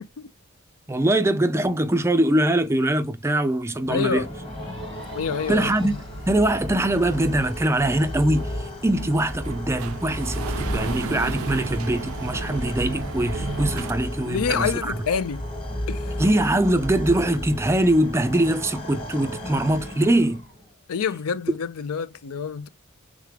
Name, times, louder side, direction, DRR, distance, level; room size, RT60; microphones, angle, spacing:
voice 1, 0.9-4.2 5.5-5.9 6.3-14.9 16.2-20.4, right 1 dB, 10° right, 0.3 m, -22 dB
sound 1, 3.7-20.7, left 1 dB, 25° left, 1.2 m, -33 dB
voice 2, 3.9-4.3 5.1-6.0 14.2-15.4 15.9-16.1 20.9-22.7, left 6 dB, 80° left, 0.4 m, -27 dB
elevator going down, 5.0-13.9, right 6 dB, 75° right, 0.4 m, -37 dB
3.6 x 3.5 x 3.3 m
head